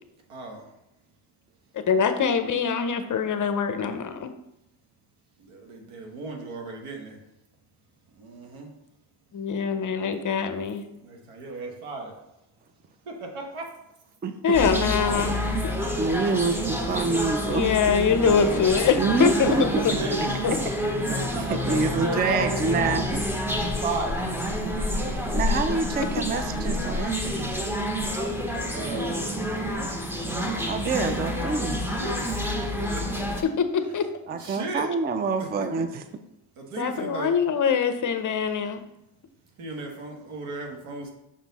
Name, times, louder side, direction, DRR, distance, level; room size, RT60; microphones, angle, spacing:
voice 1, 0.3-0.7 5.4-7.2 8.1-8.7 11.0-12.1 13.0-13.7 18.3-18.7 19.2-20.3 21.0-22.7 23.5-24.6 28.7-30.5 32.0-33.2 34.4-34.9 35.6-35.7 36.6-37.3 39.6-41.1, right 2 dB, 80° right, 1 dB, 1.6 m, -35 dB
voice 2, 1.7-4.3 9.3-10.8 14.4-15.3 15.6-15.7 17.5-19.9 20.4-20.6 22.1-22.2 26.0-26.1 33.6-34.1 36.8-38.8, left 6 dB, 40° left, 8 dB, 0.6 m, -24 dB
sound 1, 14.5-33.4, equal, 5° right, 0.8 m, -28 dB
voice 3, 16.0-17.7 19.0-19.8 21.4-23.3 25.3-27.7 30.7-31.9 34.3-35.9, right 4 dB, 25° right, 8 dB, 0.3 m, -26 dB
5.9 x 4.4 x 4.1 m, 0.86 s
cardioid pair, 105°, 49 cm